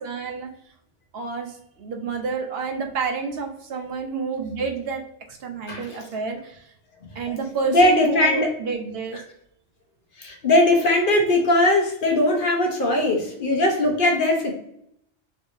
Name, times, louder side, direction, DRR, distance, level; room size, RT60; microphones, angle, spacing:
voice 1, 0.0-0.5 1.1-5.0 5.3-6.6 7.1-9.2, right 4 dB, 65° right, 3 dB, 0.8 m, -29 dB
voice 2, 5.7-6.0 7.6-8.5 10.2-14.5, left 1 dB, 55° left, 1 dB, 0.9 m, -20 dB
3.4 x 3.1 x 2.5 m, 0.73 s
omnidirectional pair, 1.2 m